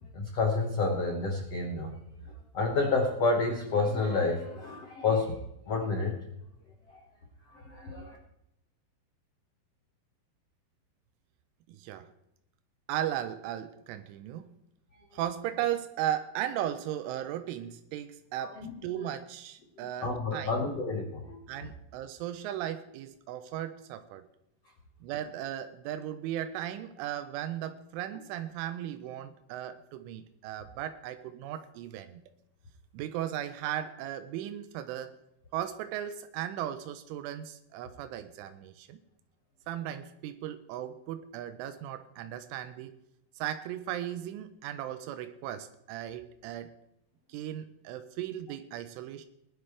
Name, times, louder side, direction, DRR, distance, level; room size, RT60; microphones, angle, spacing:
voice 1, 0.1-1.9 2.5-5.4 5.7-6.2 6.9-7.0 7.5-8.2 18.4-19.1 20.0-21.4, left 3 dB, 85° left, 1 dB, 1.4 m, -29 dB
voice 2, 11.7-12.1 12.9-14.6 15.1-20.5 21.5-24.3 25.0-32.2 32.9-35.2 35.5-39.0 39.7-42.9 43.4-46.7 47.3-49.3, right 11 dB, 90° right, 9 dB, 3.2 m, -36 dB
21.0 x 12.0 x 3.3 m, 0.80 s
omnidirectional pair, 5.5 m